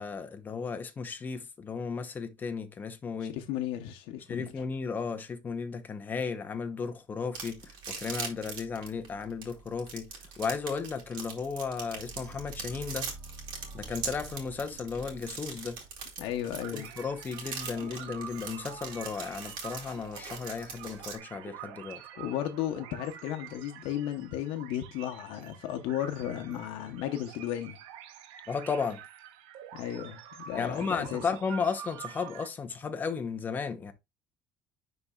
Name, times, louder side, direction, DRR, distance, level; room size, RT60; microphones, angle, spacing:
voice 1, 0.0-3.4 4.3-10.1 10.4-13.1 13.7-15.8 16.7-22.0 28.5-29.0 30.5-33.9, left 5 dB, 20° left, 0.7 m, -34 dB
voice 2, 3.2-4.5 16.2-16.9 22.2-27.8 29.7-31.2, left 11 dB, 80° left, 0.8 m, -34 dB
sound 1, 7.3-21.2, right 6 dB, 60° right, 2.4 m, -40 dB
sound 2, 12.0-16.9, right 3 dB, 40° right, 0.6 m, -48 dB
sound 3, 16.5-32.5, right 10 dB, 90° right, 0.7 m, -47 dB
10.5 x 4.1 x 2.3 m
cardioid pair, 170°, 9 cm